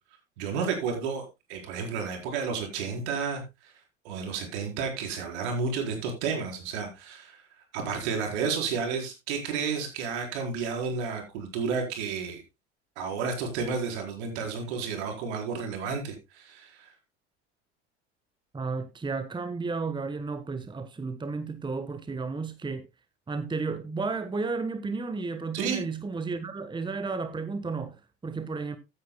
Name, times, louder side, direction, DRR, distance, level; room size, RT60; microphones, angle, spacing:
voice 1, 0.4-1.2 1.5-3.7 4.0-7.4 7.7-12.4 13.0-16.9 25.5-25.8, right 5 dB, 65° right, 4.4 m, -31 dB
voice 2, 18.5-22.8 23.3-28.8, right 4 dB, 15° right, 1.1 m, -33 dB
15.0 x 9.8 x 2.2 m
figure-of-eight pair, 65°, 36 cm